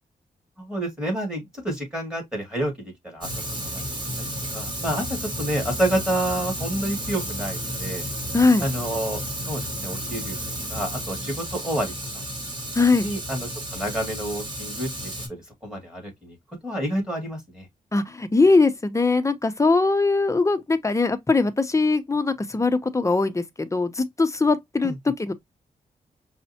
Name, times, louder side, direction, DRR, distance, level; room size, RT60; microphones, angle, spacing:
voice 1, 0.6-3.3 3.6-8.0 8.6-10.4 10.7-12.2 13.0-16.4 16.6-17.7 24.8-25.0, right 1 dB, 5° right, 2.1 m, -29 dB
Fire, 3.2-15.3, equal, 30° right, 1.9 m, -32 dB
voice 2, 12.8-13.1 17.9-25.3, left 3 dB, 20° left, 0.6 m, -21 dB
5.2 x 2.1 x 2.7 m
cardioid pair, 80°, 15 cm